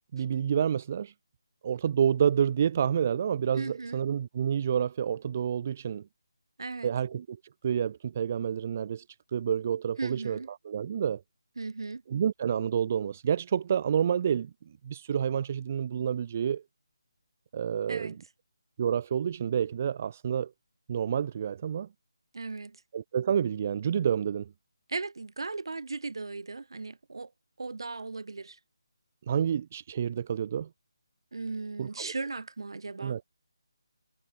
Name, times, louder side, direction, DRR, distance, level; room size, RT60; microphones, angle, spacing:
voice 1, 0.1-1.1 1.6-6.0 6.8-7.4 7.6-9.0 9.3-10.4 10.6-11.2 12.1-14.5 14.8-16.6 17.5-18.1 18.8-20.5 20.9-21.9 22.9-24.5 29.3-30.7 31.8-32.1 33.0-33.2, right 8 dB, 25° right, 0.6 m, -28 dB
voice 2, 3.5-4.0 6.6-6.9 10.0-10.5 11.6-12.0 17.9-18.2 22.3-22.8 24.9-27.3 27.6-28.6 31.3-33.2, right 3 dB, 65° right, 2.8 m, -37 dB
figure-of-eight pair, 175°, 3 cm